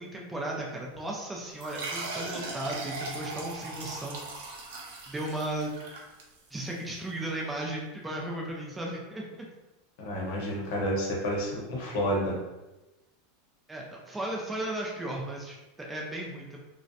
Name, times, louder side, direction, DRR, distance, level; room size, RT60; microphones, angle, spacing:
voice 1, 0.0-4.2 5.1-5.8 6.5-9.5 13.7-16.6, right 1 dB, 10° right, -2 dB, 0.4 m, -35 dB
sound 1, 1.6-6.7, right 3 dB, 80° right, 0.6 m, -39 dB
voice 2, 10.0-12.3, equal, 55° left, -2 dB, 0.8 m, -30 dB
2.4 x 2.1 x 2.6 m, 1.0 s
supercardioid pair, 155°, 0 cm